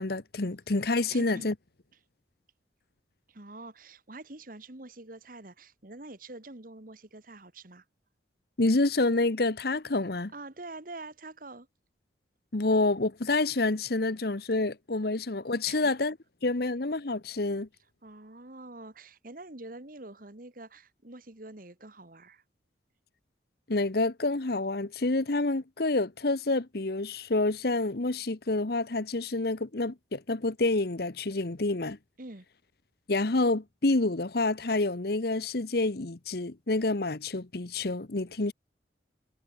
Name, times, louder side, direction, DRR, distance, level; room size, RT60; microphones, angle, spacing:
voice 1, 0.0-1.5 8.6-10.3 12.5-16.1 16.4-17.7 23.7-32.0 33.1-38.5, left 2 dB, 55° left, 1.0 m, -28 dB
voice 2, 1.1-1.5 3.3-7.8 10.3-11.7 15.7-15.9 18.0-22.4 32.2-32.5, right 2 dB, 50° right, 1.8 m, -45 dB
head